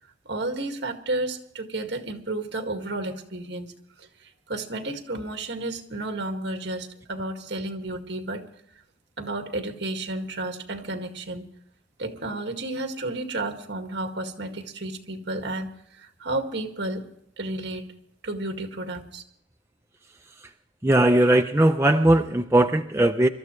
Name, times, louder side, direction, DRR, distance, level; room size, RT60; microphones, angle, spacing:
voice 1, 0.3-3.7 4.0-8.4 9.2-11.5 12.0-17.1 17.4-17.8 18.2-19.2, right 2 dB, 60° right, 5 dB, 2.0 m, -32 dB
voice 2, 20.8-23.3, right 1 dB, 15° right, 4 dB, 0.5 m, -19 dB
25.5 x 13.5 x 3.2 m, 0.70 s
head